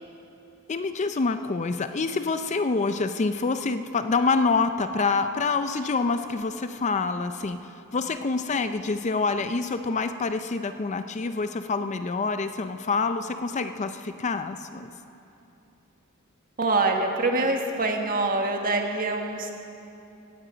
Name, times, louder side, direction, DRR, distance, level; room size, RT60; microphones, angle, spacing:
voice 1, 0.7-14.9, left 4 dB, 30° left, 9 dB, 0.5 m, -27 dB
voice 2, 16.6-19.5, right 2 dB, 40° right, 3 dB, 1.6 m, -25 dB
17.0 x 16.5 x 5.1 m, 2.8 s
head